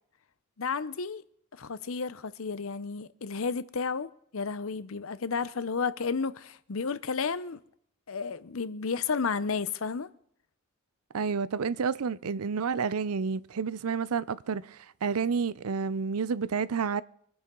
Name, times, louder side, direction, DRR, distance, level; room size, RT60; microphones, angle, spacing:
voice 1, 0.6-1.2 1.5-7.6 8.1-10.1, left 5 dB, 65° left, 0.7 m, -32 dB
voice 2, 11.1-17.0, right 5 dB, 80° right, 0.5 m, -30 dB
24.0 x 10.5 x 3.8 m
head